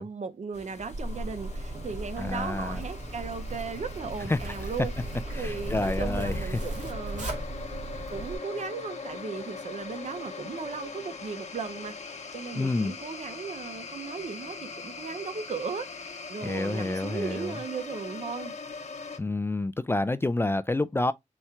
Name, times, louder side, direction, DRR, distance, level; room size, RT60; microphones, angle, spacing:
voice 1, 0.0-4.9 5.4-7.3 8.1-18.5, right 5 dB, 65° right, 0.8 m, -36 dB
sound 1, 0.5-19.2, left 4 dB, 65° left, 0.9 m, -42 dB
Zipper (clothing), 0.8-8.4, right 1 dB, 80° right, 1.9 m, -36 dB
voice 2, 2.2-2.8 4.3-4.4 5.4-6.6 12.5-12.9 16.4-17.6 19.2-21.1, left 2 dB, 20° left, 0.3 m, -28 dB
4.2 x 2.3 x 4.3 m
cardioid pair, 60°, 13 cm